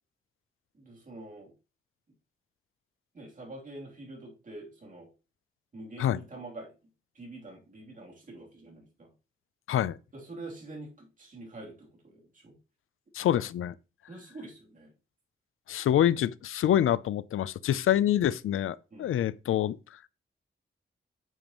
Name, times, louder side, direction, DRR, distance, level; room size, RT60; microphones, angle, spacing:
voice 1, 0.7-1.6 3.1-5.1 5.7-6.7 7.1-9.1 10.1-12.5 14.1-14.9 18.9-19.1, right 2 dB, 40° right, 3.1 m, -46 dB
voice 2, 13.1-13.7 15.7-20.0, left 11 dB, 90° left, 0.5 m, -26 dB
9.2 x 6.9 x 3.0 m
wide cardioid pair, 150°, 21 cm